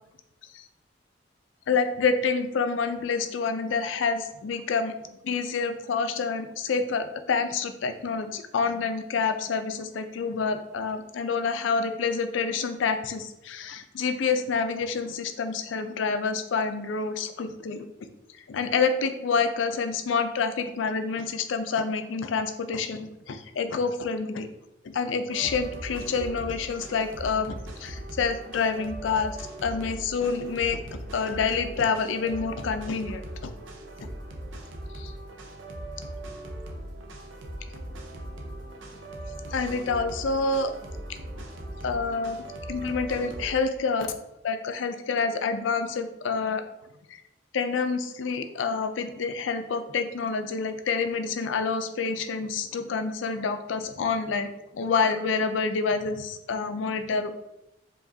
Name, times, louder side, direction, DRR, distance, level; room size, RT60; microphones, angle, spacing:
voice 1, 1.7-4.9 5.2-17.8 18.5-24.5 24.8-29.3 29.6-33.5 34.9-35.1 39.5-40.7 41.8-42.4 42.7-44.1 44.4-46.6 47.1-47.2 47.5-57.4, left 5 dB, 80° left, 9 dB, 0.4 m, -28 dB
sound 1, 25.3-43.5, right 1 dB, 85° right, 0.7 m, -39 dB
4.8 x 3.0 x 2.7 m, 0.90 s
head